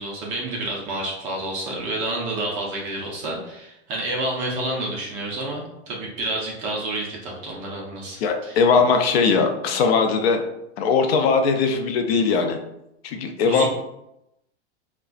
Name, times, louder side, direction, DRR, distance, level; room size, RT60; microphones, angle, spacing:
voice 1, 0.0-8.6 13.4-13.7, right 2 dB, 25° right, -2 dB, 0.4 m, -29 dB
voice 2, 8.2-10.4 10.8-12.6 13.0-13.7, left 5 dB, 65° left, 5 dB, 0.5 m, -20 dB
3.7 x 2.2 x 2.4 m, 0.85 s
supercardioid pair, 165°, 33 cm